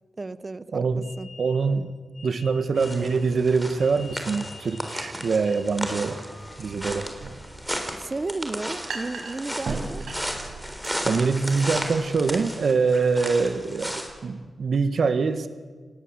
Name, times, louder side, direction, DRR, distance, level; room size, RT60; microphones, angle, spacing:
voice 1, 0.2-1.3 8.0-10.1, right 3 dB, 30° right, 16 dB, 0.9 m, -33 dB
voice 2, 0.7-1.1 1.4-1.9 2.2-6.2 6.6-7.1 11.0-15.5, right 4 dB, 70° right, 10 dB, 1.9 m, -24 dB
sound 1, 1.0-7.0, left 4 dB, 90° left, 3.9 m, -49 dB
sound 2, 2.8-14.1, equal, ahead, 3.9 m, -34 dB
sound 3, 6.4-14.2, right 3 dB, 85° right, 5.4 m, -39 dB
30.0 x 19.0 x 7.9 m, 1.5 s
wide cardioid pair, 115°, 0 cm